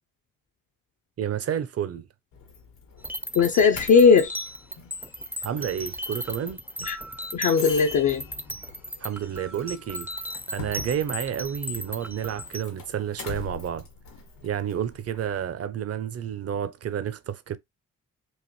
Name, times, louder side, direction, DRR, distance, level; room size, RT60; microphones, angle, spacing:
voice 1, 1.2-2.1 5.4-6.6 9.0-10.1 10.5-13.9 14.4-17.6, right 9 dB, 50° right, 0.6 m, -30 dB
Doorbell, 2.3-15.5, left 5 dB, 90° left, 1.3 m, -44 dB
sound 1, 3.0-12.6, equal, 5° right, 0.4 m, -36 dB
voice 2, 3.3-4.5 6.8-7.0 7.3-8.2, left 5 dB, 60° left, 0.6 m, -18 dB
4.7 x 2.5 x 3.1 m
supercardioid pair, 50°, 32 cm